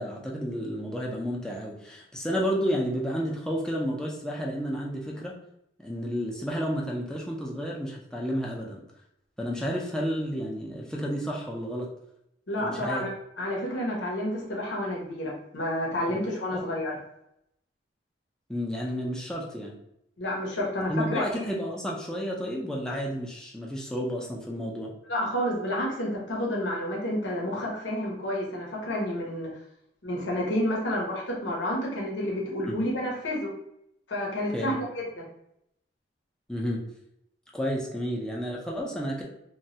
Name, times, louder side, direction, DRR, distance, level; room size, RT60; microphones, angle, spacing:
voice 1, 0.0-5.4 5.8-8.8 9.4-11.9 12.6-13.1 16.1-16.2 16.5-16.6 18.5-19.8 20.9-24.9 32.7-32.8 34.5-34.8 36.5-36.8 37.5-39.2, equal, 5° left, -3 dB, 0.5 m, -31 dB
voice 2, 12.5-13.1 13.4-17.0 20.2-21.3 25.1-29.5 30.0-33.5 34.1-35.3, left 1 dB, 80° left, -2 dB, 0.8 m, -30 dB
3.0 x 2.3 x 2.7 m, 0.79 s
head